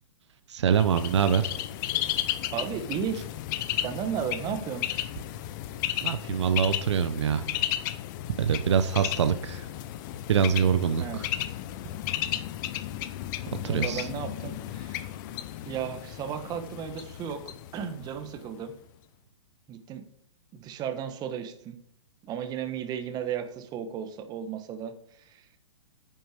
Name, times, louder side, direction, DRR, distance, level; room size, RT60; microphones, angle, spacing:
voice 1, 0.5-1.5 6.0-7.5 8.4-9.7 10.3-11.3 13.6-14.1, right 7 dB, 65° right, 10 dB, 0.9 m, -24 dB
Bird, 0.7-18.5, left 13 dB, 40° left, 0.8 m, -34 dB
voice 2, 2.5-3.3 3.8-4.9 11.0-11.2 13.6-15.1 15.7-17.4 17.7-18.7 19.7-20.0 20.5-21.8 22.2-25.4, right 8 dB, 25° right, 8 dB, 1.4 m, -34 dB
10.0 x 7.8 x 5.1 m, 0.70 s
hypercardioid pair, 120°, 16 cm